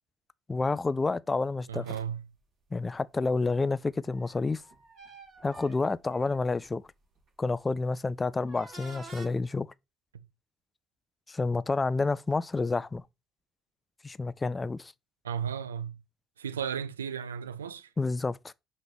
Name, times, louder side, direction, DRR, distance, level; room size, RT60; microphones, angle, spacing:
voice 1, 0.5-1.9 2.7-4.6 5.4-6.8 7.4-9.7 11.3-13.0 14.0-14.9 18.0-18.5, left 3 dB, 25° left, 0.4 m, -29 dB
voice 2, 1.7-2.3 10.1-10.3 15.2-16.0 16.4-17.9, right 8 dB, 80° right, 0.4 m, -35 dB
sound 1, 1.8-2.0 4.1-6.7 7.3-7.5 8.3-9.3, right 2 dB, 55° right, 4.2 m, -49 dB
5.9 x 4.2 x 5.1 m
figure-of-eight pair, 45°, 0 cm